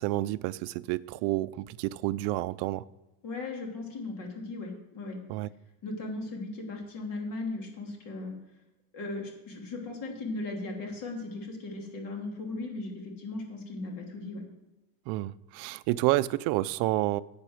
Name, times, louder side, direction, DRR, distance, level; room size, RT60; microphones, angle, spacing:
voice 1, 0.0-2.8 5.3-5.5 15.1-17.2, right 17 dB, 60° right, 0.5 m, -29 dB
voice 2, 3.2-5.2 5.8-8.3 8.9-14.4, left 2 dB, 45° left, 2.8 m, -37 dB
10.5 x 8.7 x 6.4 m
cardioid pair, 180°, 46 cm